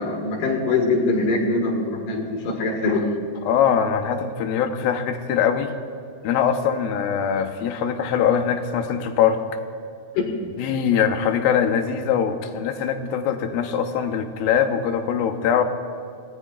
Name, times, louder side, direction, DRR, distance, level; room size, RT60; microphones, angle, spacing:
voice 1, 0.0-3.0 10.1-10.3, left 3 dB, 70° left, 1 dB, 3.3 m, -23 dB
voice 2, 3.5-5.7 6.2-9.4 10.6-15.6, left 8 dB, 90° left, 6 dB, 2.7 m, -22 dB
27.5 x 17.5 x 2.4 m, 2.6 s
omnidirectional pair, 4.1 m